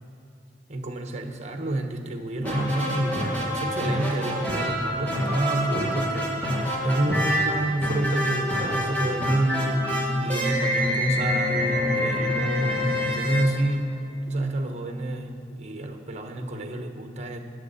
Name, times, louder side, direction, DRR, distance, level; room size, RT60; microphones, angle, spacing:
voice 1, 0.7-6.3 6.8-9.9 10.2-17.4, right 2 dB, 40° right, 5 dB, 1.0 m, -29 dB
sound 1, 2.4-14.3, equal, 10° left, 1.9 m, -26 dB
21.0 x 7.4 x 4.1 m, 2.4 s
head